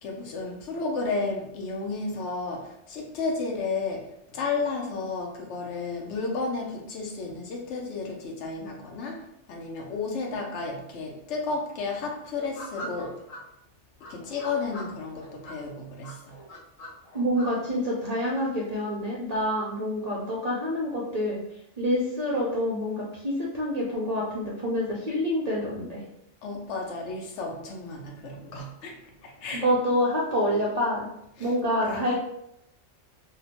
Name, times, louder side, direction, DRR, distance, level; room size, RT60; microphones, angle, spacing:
voice 1, 0.0-13.2 14.1-16.3 26.4-29.7 31.4-31.5 31.8-32.1, left 3 dB, 70° left, 1 dB, 0.9 m, -32 dB
sound 1, 12.4-13.4 14.0-15.6 16.0-17.5, equal, 40° left, 0.4 m, -42 dB
voice 2, 17.1-21.4 21.8-26.0 29.5-31.1 31.4-32.1, equal, 60° right, -5 dB, 0.4 m, -27 dB
2.7 x 2.1 x 2.8 m, 0.79 s
omnidirectional pair, 1.3 m